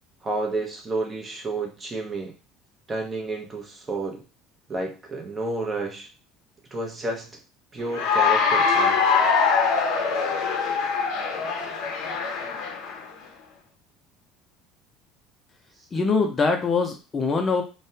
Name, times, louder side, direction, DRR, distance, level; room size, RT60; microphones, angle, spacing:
voice 1, 0.2-2.3 2.9-4.2 4.7-6.1 6.7-7.4 7.7-9.0, right 2 dB, 25° right, 1 dB, 0.8 m, -30 dB
Cheering / Applause, 7.9-13.1, left 5 dB, 75° left, 0.7 m, -23 dB
voice 2, 15.9-17.6, left 4 dB, 30° left, 3 dB, 0.5 m, -23 dB
3.3 x 2.2 x 2.7 m, 0.31 s
supercardioid pair, 115°, 0 cm